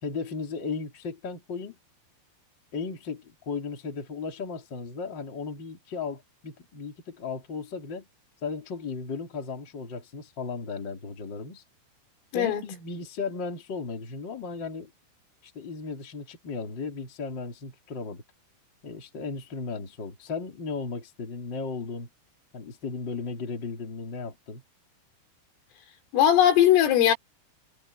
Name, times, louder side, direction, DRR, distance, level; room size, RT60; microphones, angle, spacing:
voice 1, 0.0-1.8 2.7-8.1 8.4-11.6 12.3-14.9 15.4-18.2 18.8-22.1 22.5-24.6, left 4 dB, 25° left, 3.4 m, -35 dB
voice 2, 26.1-27.1, left 10 dB, 75° left, 5.7 m, -19 dB
omnidirectional pair, 5.9 m